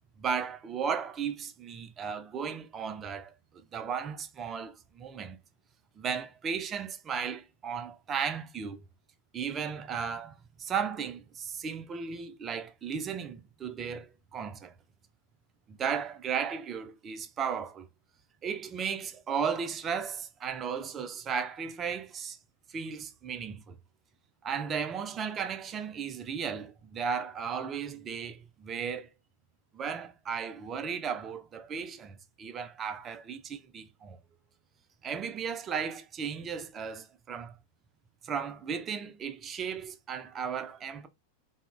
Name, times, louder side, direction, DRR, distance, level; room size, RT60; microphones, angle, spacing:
voice 1, 0.2-3.3 3.7-5.4 6.0-8.8 9.3-14.7 15.7-17.9 18.4-22.4 22.7-23.8 24.4-29.1 29.7-34.2 35.0-37.6 38.2-41.1, right 6 dB, 25° right, 0.4 m, -35 dB
3.4 x 2.0 x 2.4 m
figure-of-eight pair, 90°, 0 cm